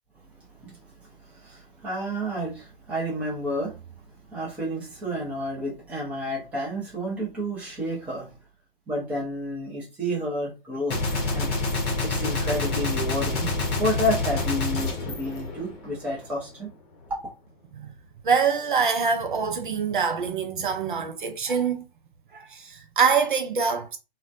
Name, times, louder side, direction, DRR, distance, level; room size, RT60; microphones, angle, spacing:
voice 1, 1.3-3.8 4.3-8.3 8.9-11.0 11.3-11.5 12.0-13.5 13.8-16.7, equal, 5° right, 0.5 m, -30 dB
Gunshot gunfire, 10.9-16.1, left 3 dB, 25° left, 0.9 m, -27 dB
voice 2, 18.2-21.8 22.3-24.0, right 6 dB, 55° right, 0.5 m, -25 dB
3.1 x 2.2 x 2.5 m
figure-of-eight pair, 125°, 31 cm